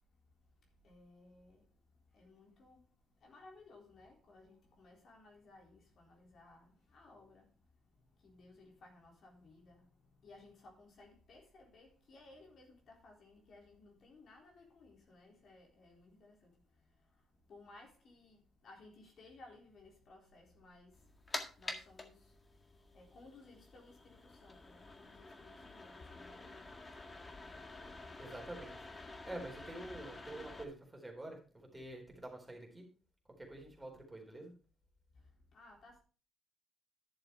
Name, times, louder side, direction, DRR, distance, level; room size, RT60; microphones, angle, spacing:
voice 1, 0.0-28.3 35.1-36.0, left 2 dB, 60° left, 3.8 m, -60 dB
sound 1, 20.9-30.6, left 2 dB, 30° left, 1.8 m, -49 dB
voice 2, 28.2-28.7 29.3-32.8 33.4-34.5, right 1 dB, 10° right, 4.1 m, -47 dB
11.5 x 6.8 x 4.6 m
cardioid pair, 90°, 0 cm